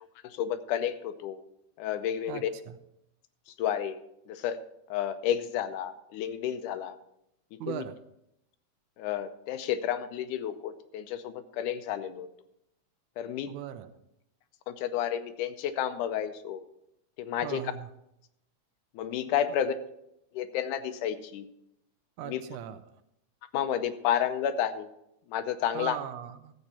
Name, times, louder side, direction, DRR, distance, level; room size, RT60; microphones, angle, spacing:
voice 1, 0.2-1.4 1.8-2.5 3.6-4.0 4.3-4.6 4.9-7.0 7.5-7.8 9.0-12.3 13.2-13.5 14.7-16.6 17.2-17.6 18.9-19.7 20.3-21.5 22.2-22.4 23.5-24.9 25.3-26.0, left 10 dB, 85° left, 10 dB, 2.2 m, -31 dB
voice 2, 2.3-2.8 7.6-8.0 13.5-13.9 17.4-17.9 22.2-22.8 25.7-26.5, right 10 dB, 85° right, 10 dB, 2.1 m, -38 dB
13.5 x 8.0 x 4.2 m, 0.80 s
omnidirectional pair, 3.6 m